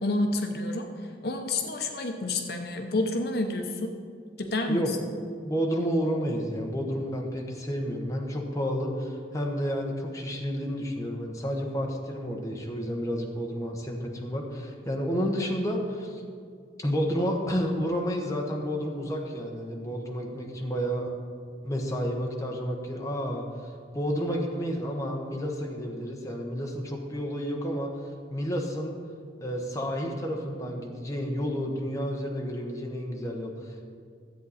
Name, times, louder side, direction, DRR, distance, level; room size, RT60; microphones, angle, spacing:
voice 1, 0.0-0.9 1.2-3.9 4.4-5.0, left 2 dB, 60° left, 4 dB, 0.8 m, -29 dB
voice 2, 5.4-16.2 16.8-21.1 21.6-23.4 23.9-27.9 28.3-29.0 29.4-33.8, equal, 20° left, 0 dB, 1.1 m, -30 dB
13.5 x 8.1 x 4.2 m, 2.2 s
head